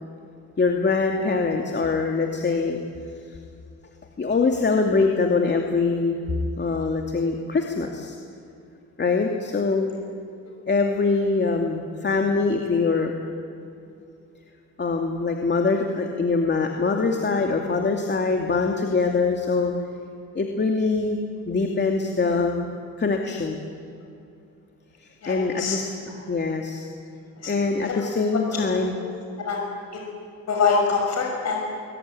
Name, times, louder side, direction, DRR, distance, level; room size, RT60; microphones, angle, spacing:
voice 1, 0.6-2.8 4.2-6.2 6.6-8.1 9.0-9.9 10.7-13.1 14.8-19.7 20.3-21.2 21.5-22.7 23.0-23.6 25.3-25.9 26.3-26.9 27.5-28.9, left 4 dB, 35° left, 2 dB, 2.6 m, -23 dB
voice 2, 25.2-25.8 27.4-27.5 27.8-28.0 28.3-28.6 29.0-29.1 29.4-29.6 29.9-30.0 30.5-31.6, left 5 dB, 60° left, 0 dB, 6.3 m, -25 dB
22.0 x 22.0 x 9.7 m, 2.5 s
cardioid pair, 90°, 30 cm